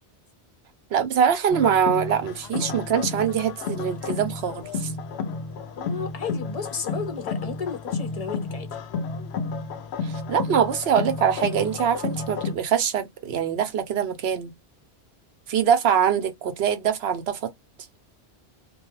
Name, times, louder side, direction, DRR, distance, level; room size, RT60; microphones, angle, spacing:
voice 1, 0.9-4.9 10.0-14.5 15.5-17.5, right 8 dB, 75° right, 0.9 m, -23 dB
sound 1, 1.5-12.6, left 4 dB, 80° left, 0.8 m, -31 dB
voice 2, 5.8-8.7, left 5 dB, 40° left, 0.6 m, -33 dB
2.3 x 2.2 x 3.0 m
omnidirectional pair, 1.1 m